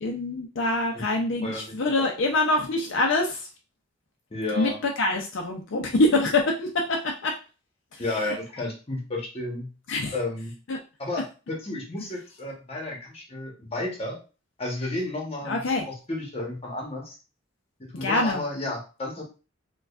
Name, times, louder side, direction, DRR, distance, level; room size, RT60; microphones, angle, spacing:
voice 1, 0.0-3.5 4.5-7.3 7.9-8.3 9.9-10.2 10.7-10.8 11.1-11.2 15.4-15.9 18.0-18.4, left 2 dB, 65° left, 1 dB, 0.5 m, -25 dB
voice 2, 1.4-1.8 4.3-4.8 8.0-9.7 10.1-10.5 11.0-14.2 14.6-17.2 17.8-19.2, left 2 dB, 30° left, 0 dB, 1.0 m, -32 dB
4.7 x 2.3 x 2.4 m, 0.33 s
head